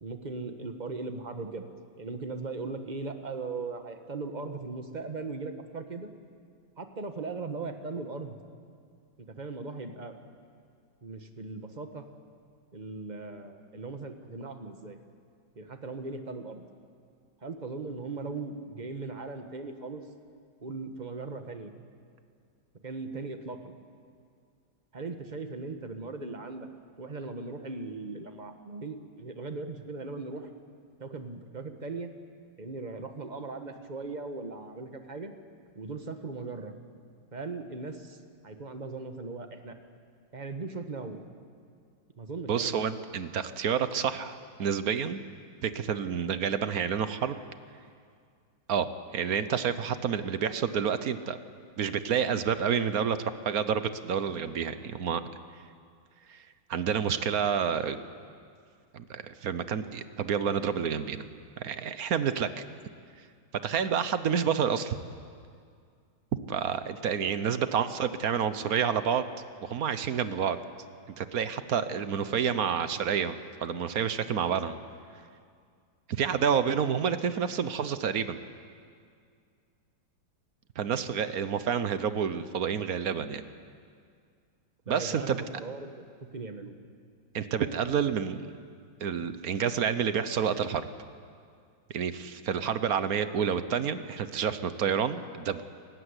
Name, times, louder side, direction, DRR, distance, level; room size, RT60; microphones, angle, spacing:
voice 1, 0.0-1.6 2.0-6.1 6.8-8.4 9.2-10.1 11.0-12.0 12.7-15.0 15.5-16.6 17.4-20.0 20.6-21.7 22.8-23.7 24.9-26.7 27.0-30.5 31.0-32.1 32.6-35.3 35.7-36.7 37.3-38.2 38.4-39.7 40.3-41.2 42.2-42.9 67.3-67.5 84.9-86.7, right 3 dB, 25° right, 6 dB, 1.3 m, -38 dB
voice 2, 42.5-45.2 45.6-47.4 48.7-48.9 49.1-51.4 51.8-53.2 53.4-55.2 56.3-56.4 56.7-58.0 58.9-61.3 61.6-62.6 63.6-64.9 66.5-69.3 69.6-70.6 71.2-73.3 73.6-74.7 76.1-78.4 80.8-83.4 84.9-85.4 87.3-88.5 89.0-90.8 91.9-95.6, right 7 dB, 55° right, 12 dB, 1.2 m, -29 dB
25.0 x 15.5 x 9.8 m, 2.2 s
omnidirectional pair, 2.1 m